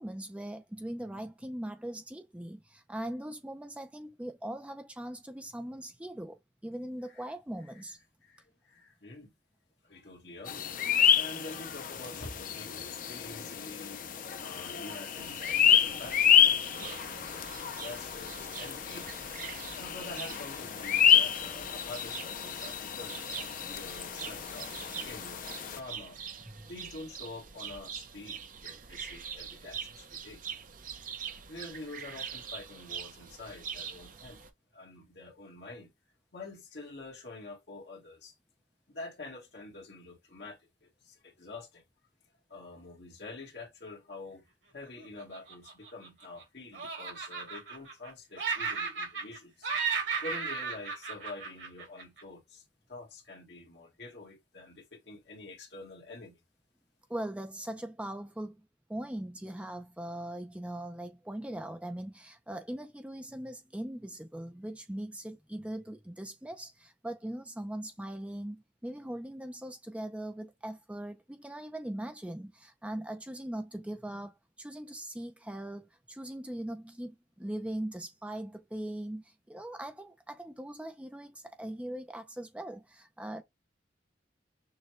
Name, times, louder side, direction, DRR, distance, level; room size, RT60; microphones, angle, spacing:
voice 1, 0.0-6.4 6.6-8.0 19.5-19.6 26.5-26.7 57.1-58.6 58.9-83.4, right 1 dB, 5° right, 0.4 m, -40 dB
voice 2, 8.2-9.3 9.8-14.0 14.4-19.2 19.8-23.2 23.7-25.4 25.7-26.2 26.6-30.4 31.5-34.4 34.7-35.9 36.3-38.3 38.9-41.8 42.5-44.5 44.7-49.7 50.2-56.4, left 2 dB, 60° left, 1.6 m, -47 dB
sound 1, 10.5-25.8, left 8 dB, 45° left, 0.5 m, -29 dB
sound 2, 15.2-34.5, right 7 dB, 45° right, 0.7 m, -44 dB
Laughter, 45.2-46.4 46.7-48.1 48.4-49.4 49.6-52.2, right 5 dB, 90° right, 2.7 m, -35 dB
6.4 x 2.2 x 3.1 m
head